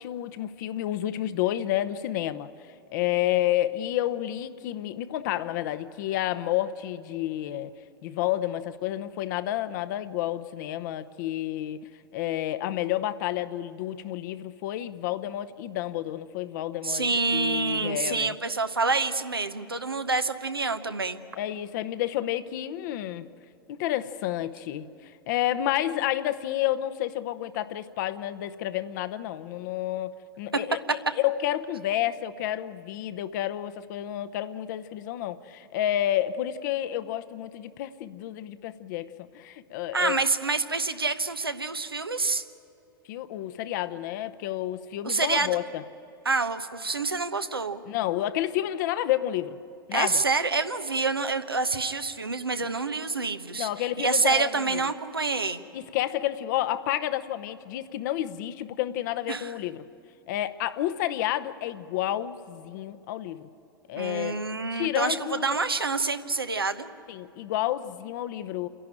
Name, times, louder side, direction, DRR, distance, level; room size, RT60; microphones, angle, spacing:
voice 1, 0.0-2.5 2.9-7.7 8.0-18.3 21.4-23.3 23.7-40.2 43.1-45.8 47.9-49.6 49.9-50.2 53.5-54.8 55.7-59.8 60.3-63.5 63.9-64.4 64.7-65.6 67.1-68.7, left 13 dB, 55° left, 11 dB, 0.8 m, -30 dB
voice 2, 16.8-21.2 39.9-42.4 45.0-45.6 46.2-47.8 49.9-55.6 59.3-59.5 63.9-66.9, right 3 dB, 90° right, 9 dB, 1.0 m, -27 dB
28.5 x 11.0 x 8.9 m, 2.8 s
figure-of-eight pair, 95°, 12 cm